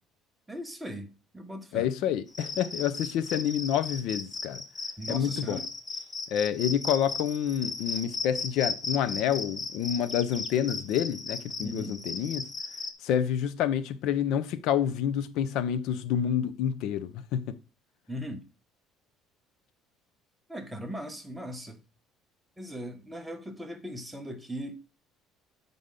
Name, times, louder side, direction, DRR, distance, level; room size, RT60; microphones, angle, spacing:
voice 1, 0.5-1.1 1.3-1.9 5.0-5.7 11.6-12.0 18.1-18.4 20.5-21.8 22.6-24.8, equal, 5° right, 1.0 m, -38 dB
voice 2, 1.7-4.6 5.1-5.6 6.3-12.5 13.0-17.6, left 9 dB, 65° left, 0.6 m, -28 dB
Cricket, 2.3-12.9, left 4 dB, 20° left, 0.9 m, -36 dB
8.0 x 5.3 x 3.7 m
cardioid pair, 160°, 0 cm